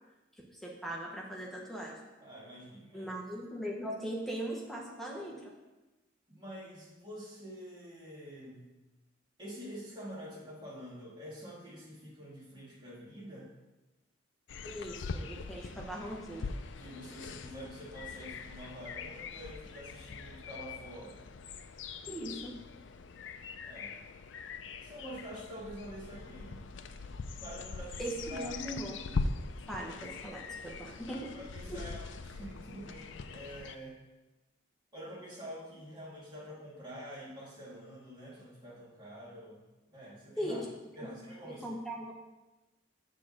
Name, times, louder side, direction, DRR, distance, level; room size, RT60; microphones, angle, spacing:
voice 1, 0.4-2.0 2.9-5.5 14.6-16.5 22.0-22.5 28.0-29.0 29.7-31.3 31.7-31.8 40.4-40.6 41.0-41.2 41.6-42.1, right 1 dB, ahead, -2 dB, 0.9 m, -39 dB
voice 2, 2.2-3.1 6.3-8.7 9.4-13.5 16.8-21.3 23.7-24.0 24.8-26.7 27.4-28.6 31.1-34.0 34.9-40.6 41.0-41.7, equal, 25° right, -7 dB, 2.1 m, -47 dB
sound 1, 14.5-33.8, left 4 dB, 70° left, 0.4 m, -42 dB
6.8 x 3.8 x 6.3 m, 1.1 s
head